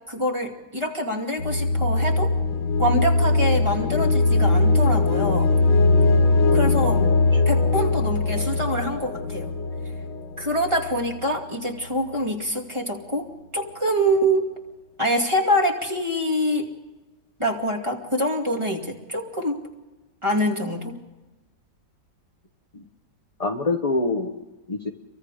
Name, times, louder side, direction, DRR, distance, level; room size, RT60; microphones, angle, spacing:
voice 1, 0.1-2.3 2.8-5.5 6.5-7.0 7.5-9.5 10.4-14.4 15.0-16.7 17.4-19.6 20.2-21.0, equal, 15° right, 1 dB, 2.5 m, -25 dB
sound 1, 1.4-11.2, left 3 dB, 75° left, 2.1 m, -21 dB
voice 2, 23.4-24.9, left 3 dB, 30° left, 5 dB, 0.8 m, -26 dB
30.0 x 24.0 x 5.0 m, 1.1 s
omnidirectional pair, 2.0 m